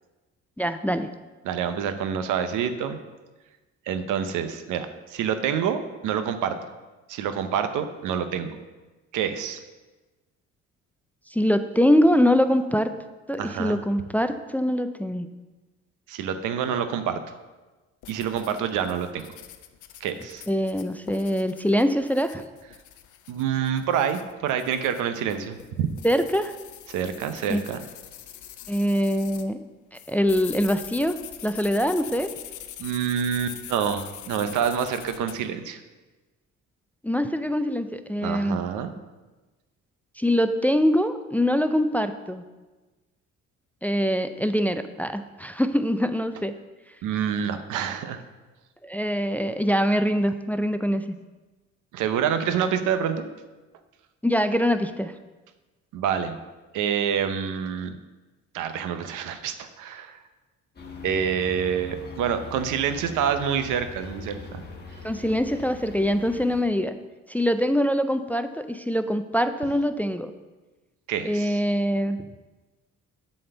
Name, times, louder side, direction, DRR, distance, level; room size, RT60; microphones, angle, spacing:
voice 1, 0.6-1.1 11.3-12.9 13.3-15.3 20.5-22.5 26.0-26.5 27.5-27.6 28.7-29.6 30.1-31.2 31.4-32.3 37.0-38.6 40.2-42.4 43.8-46.5 48.8-51.2 54.2-55.1 65.0-66.9 67.3-70.3 71.2-72.2, equal, 5° left, 9 dB, 0.3 m, -23 dB
voice 2, 1.4-3.0 3.9-6.6 7.1-8.6 9.1-9.6 13.4-13.8 16.1-17.2 18.1-19.3 20.0-20.4 23.3-25.9 26.9-27.8 32.8-35.8 38.2-39.0 47.0-48.2 51.9-53.3 55.9-56.4 56.7-58.0 58.5-60.2 61.0-64.6 71.1-71.6, right 8 dB, 90° right, 9 dB, 0.7 m, -27 dB
sound 1, 18.0-29.5 29.9-35.4, left 11 dB, 75° left, 0.6 m, -43 dB
sound 2, 60.8-66.6, left 4 dB, 35° left, 1.3 m, -41 dB
7.7 x 4.3 x 6.7 m, 1.2 s
cardioid pair, 90°, 30 cm